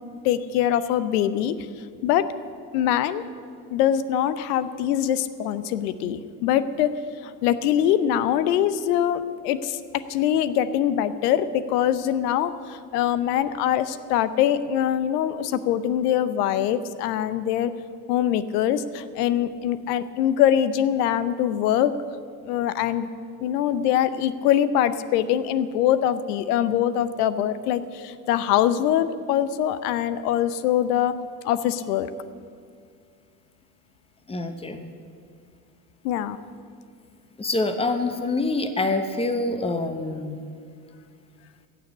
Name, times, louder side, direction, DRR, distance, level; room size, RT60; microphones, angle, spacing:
voice 1, 0.2-1.5 2.0-2.3 2.7-3.2 3.7-6.9 7.2-9.8 10.1-17.7 18.1-21.9 22.5-23.1 23.4-31.1 31.4-32.1 36.0-36.4, left 10 dB, 65° left, 14 dB, 0.8 m, -23 dB
voice 2, 34.3-34.8 37.4-40.4, left 2 dB, 10° left, 8 dB, 1.2 m, -26 dB
15.0 x 6.9 x 8.3 m, 2.2 s
hypercardioid pair, 70°, 50 cm